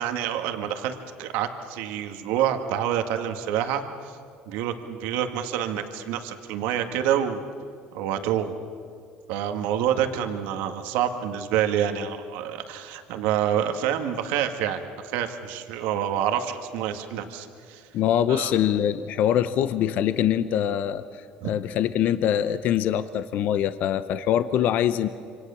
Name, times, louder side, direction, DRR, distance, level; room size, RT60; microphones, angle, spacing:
voice 1, 0.0-4.1 4.5-7.4 7.9-8.5 9.3-14.8 15.1-17.8 18.3-18.5 21.4-21.5, right 10 dB, 85° right, 6 dB, 1.9 m, -27 dB
voice 2, 17.9-25.1, left 10 dB, 60° left, 12 dB, 0.9 m, -24 dB
27.0 x 25.5 x 7.1 m, 2.3 s
cardioid pair, 120°, 3 cm